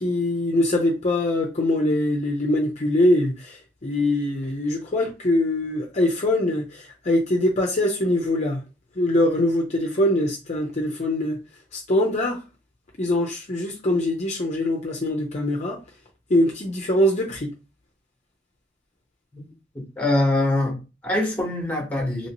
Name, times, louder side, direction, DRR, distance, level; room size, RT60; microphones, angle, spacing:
voice 1, 0.0-8.6 9.0-11.4 11.7-12.4 13.0-15.8 16.3-17.5, left 1 dB, 40° left, 0.6 m, -23 dB
voice 2, 19.7-22.3, left 2 dB, 10° left, 1.0 m, -24 dB
2.9 x 2.8 x 2.9 m
head